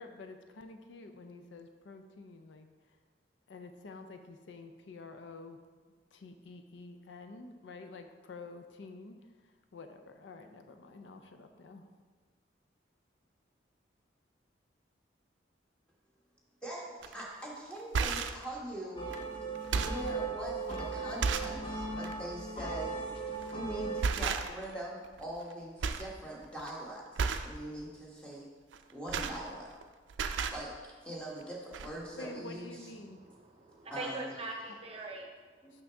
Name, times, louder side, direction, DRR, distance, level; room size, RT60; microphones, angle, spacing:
voice 1, 0.0-2.7 3.5-5.6 6.1-9.2 9.4-11.9 32.1-33.2 35.7-35.8, left 3 dB, 75° left, 7 dB, 0.5 m, -49 dB
voice 2, 16.6-19.1 19.8-22.9 23.5-28.5 28.9-29.7 30.5-32.9 33.9-34.3 35.6-35.8, right 1 dB, 5° left, -4 dB, 1.2 m, -42 dB
sound 1, 17.0-17.2 17.8-18.4 19.1-19.2 19.6-20.1 20.7-20.8 21.2-21.6 22.0-22.2 23.3-23.6 24.0-24.7 25.0-25.5 25.8-26.1 26.4-26.7 27.2-27.6 28.7-29.8 30.1-30.6 31.4-31.5 31.7-31.9, right 5 dB, 80° right, 0.4 m, -33 dB
sound 2, 19.0-24.0, right 3 dB, 30° left, 0.6 m, -38 dB
voice 3, 33.0-35.6, right 2 dB, 30° right, 1 dB, 0.7 m, -43 dB
6.2 x 5.9 x 3.4 m, 1.4 s
head